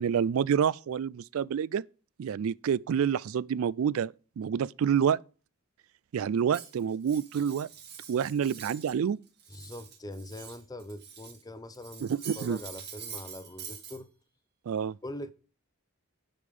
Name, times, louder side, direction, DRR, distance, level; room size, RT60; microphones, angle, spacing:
voice 1, 0.0-1.8 2.2-5.2 6.1-7.7 8.1-9.2 12.0-12.6 14.7-15.0, right 8 dB, 70° right, 0.3 m, -28 dB
Cutlery silverware, 6.5-9.0 9.3-11.4 11.7-14.0, right 7 dB, 50° right, 2.5 m, -46 dB
voice 2, 9.5-14.1 15.0-15.3, left 1 dB, 15° left, 0.7 m, -42 dB
10.0 x 5.2 x 5.3 m
head